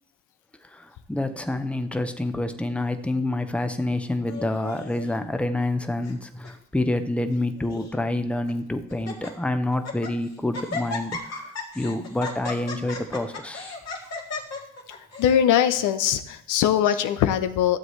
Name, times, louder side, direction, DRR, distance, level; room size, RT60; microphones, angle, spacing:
voice 1, 0.6-13.8, left 1 dB, 5° left, 8 dB, 0.7 m, -28 dB
Laughter, 4.3-5.1 5.8-6.2 6.4-6.5 7.3-7.9 8.5-8.6 8.9-9.3 9.7-10.1 10.5-15.3, left 3 dB, 60° left, 2.1 m, -35 dB
voice 2, 14.9-17.8, left 10 dB, 90° left, 11 dB, 0.7 m, -22 dB
13.0 x 7.4 x 3.2 m, 0.68 s
cardioid pair, 90°, 30 cm